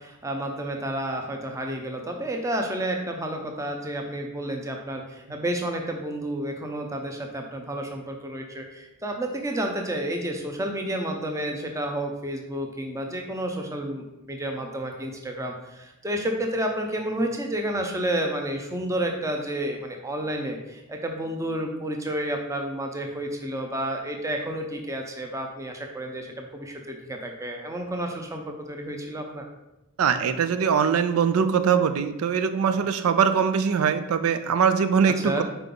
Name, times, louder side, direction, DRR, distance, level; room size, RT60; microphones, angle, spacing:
voice 1, 0.0-29.5 35.2-35.4, right 1 dB, 15° right, 2 dB, 0.6 m, -30 dB
voice 2, 30.0-35.4, right 6 dB, 90° right, 11 dB, 0.4 m, -22 dB
5.3 x 4.6 x 3.8 m, 0.97 s
head